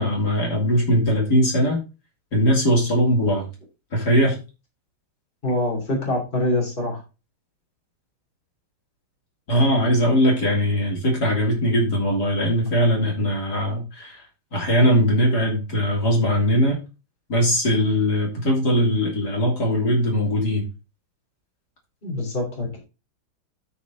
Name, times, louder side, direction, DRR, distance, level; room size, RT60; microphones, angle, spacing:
voice 1, 0.0-1.8 2.3-3.5 3.9-4.4 9.5-14.2 14.5-16.8 17.3-20.7, equal, 50° left, -1 dB, 3.7 m, -20 dB
voice 2, 5.4-7.0 22.0-22.8, left 1 dB, 25° left, -1 dB, 3.3 m, -25 dB
12.5 x 4.8 x 3.8 m, 0.29 s
omnidirectional pair, 2.3 m